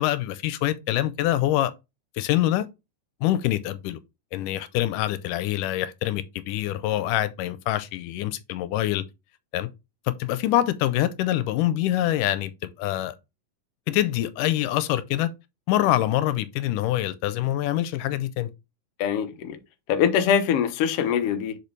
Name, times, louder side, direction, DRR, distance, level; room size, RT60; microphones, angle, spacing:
voice 1, 0.0-1.7 2.2-2.7 3.2-4.0 4.3-9.0 9.5-9.7 10.1-12.5 12.8-13.2 13.9-15.3 15.7-18.5, left 13 dB, 90° left, 2.2 m, -25 dB
voice 2, 19.0-19.6 19.9-21.6, left 8 dB, 65° left, 1.6 m, -23 dB
6.8 x 5.3 x 3.2 m
omnidirectional pair, 3.7 m